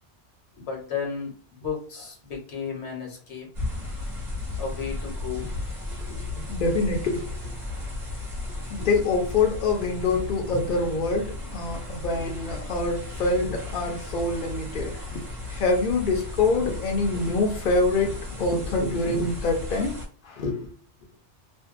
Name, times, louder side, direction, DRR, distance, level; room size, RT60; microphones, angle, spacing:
voice 1, 0.5-1.3 1.6-3.8 4.6-5.7 6.1-6.2 8.8-8.9 12.1-12.2, left 5 dB, 70° left, 0 dB, 1.1 m, -33 dB
sound 1, 3.5-20.1, left 2 dB, 40° right, 0.9 m, -35 dB
voice 2, 6.5-7.4 8.7-15.2 15.5-19.9 20.2-20.7, left 3 dB, 55° left, 1 dB, 0.7 m, -25 dB
2.6 x 2.1 x 2.4 m, 0.41 s
omnidirectional pair, 1.2 m